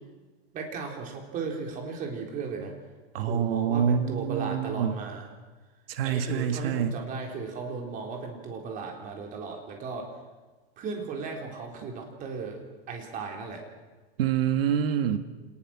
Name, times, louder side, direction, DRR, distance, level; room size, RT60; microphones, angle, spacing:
voice 1, 0.5-2.7 3.2-5.3 6.0-10.1 10.8-12.6 12.9-13.6, right 4 dB, 25° right, 1 dB, 4.0 m, -36 dB
voice 2, 3.1-5.0 5.9-6.9 14.2-15.2, right 8 dB, 65° right, 8 dB, 2.0 m, -26 dB
27.0 x 19.5 x 6.1 m, 1.3 s
supercardioid pair, 160°, 32 cm